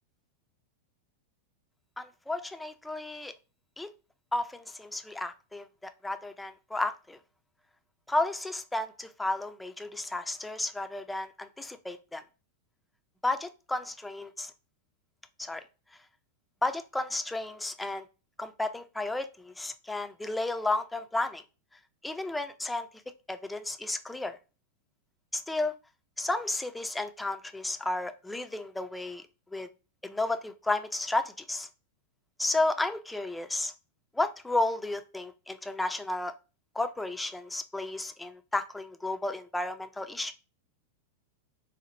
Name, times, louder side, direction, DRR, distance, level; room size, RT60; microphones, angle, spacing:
voice 1, 2.0-3.3 3.8-3.9 4.3-7.2 8.1-12.2 13.2-14.5 15.4-15.6 16.6-18.0 18.4-21.4 22.0-22.9 23.3-24.4 25.3-25.7 26.2-29.2 29.5-29.7 30.0-31.7 32.4-33.7 34.1-36.3 36.8-40.3, left 2 dB, 5° left, 0.3 m, -32 dB
4.2 x 2.0 x 2.9 m
figure-of-eight pair, 90°, 0 cm